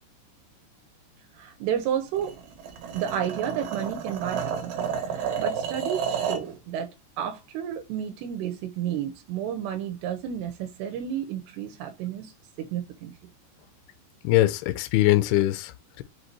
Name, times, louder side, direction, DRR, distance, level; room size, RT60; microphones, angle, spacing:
voice 1, 1.4-2.4 2.9-6.9 7.2-12.3 12.6-13.1, right 9 dB, 85° right, 2.7 m, -31 dB
sound 1, 2.1-6.5, right 7 dB, 65° right, 2.4 m, -31 dB
voice 2, 14.2-16.0, left 16 dB, 80° left, 2.3 m, -22 dB
6.5 x 2.6 x 2.9 m
omnidirectional pair, 4.8 m